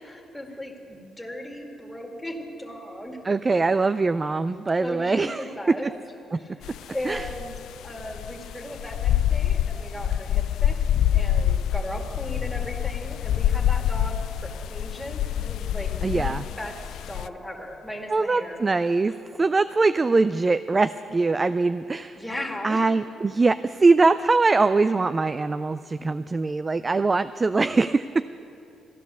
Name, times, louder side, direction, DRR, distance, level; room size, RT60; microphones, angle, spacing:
voice 1, 0.0-3.2 4.8-5.9 6.3-10.8 11.0-16.8 17.1-19.2 22.2-22.9, left 1 dB, 5° left, 0 dB, 2.1 m, -37 dB
voice 2, 3.3-5.4 7.1-7.2 16.0-16.4 18.1-19.1 19.4-22.2 22.6-28.3, right 3 dB, 25° right, 13 dB, 0.3 m, -22 dB
sound 1, 6.6-6.8 7.1-17.3, left 10 dB, 80° left, 0.3 m, -26 dB
15.0 x 10.5 x 6.8 m, 2.8 s
cardioid pair, 90°, 0 cm